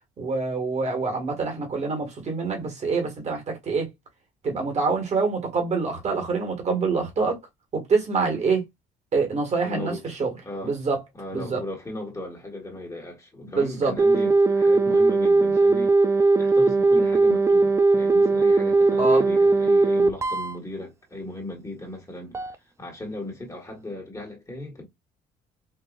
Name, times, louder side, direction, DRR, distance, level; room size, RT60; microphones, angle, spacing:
voice 1, 0.2-3.9 4.4-7.4 7.7-8.6 9.1-10.3 10.6-11.0 11.3-11.6 13.6-13.9 19.0-19.2, right 4 dB, 40° right, 1.7 m, -25 dB
voice 2, 9.6-10.2 10.4-10.8 11.1-22.4 22.8-24.9, left 1 dB, 20° left, 1.5 m, -36 dB
sound 1, 14.0-20.6 22.3-22.5, right 3 dB, 15° right, 0.4 m, -19 dB
4.6 x 2.6 x 2.4 m
cardioid pair, 110°, 17 cm